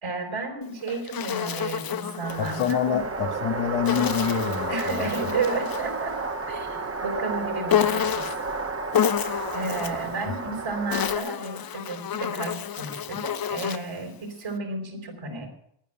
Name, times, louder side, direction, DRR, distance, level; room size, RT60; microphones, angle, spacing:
voice 1, 0.0-3.0 4.7-8.2 9.5-15.5, right 3 dB, 70° right, 3 dB, 4.5 m, -32 dB
Insect, 0.6-2.8 3.9-5.9 7.7-8.5 8.9-10.1 10.7-14.0, left 9 dB, 50° left, 0.7 m, -29 dB
sound 1, 2.2-11.2, right 3 dB, 30° right, 1.4 m, -32 dB
voice 2, 2.4-5.4, left 8 dB, 90° left, 5 dB, 1.8 m, -27 dB
10.0 x 9.8 x 9.9 m, 0.72 s
cardioid pair, 65°, 48 cm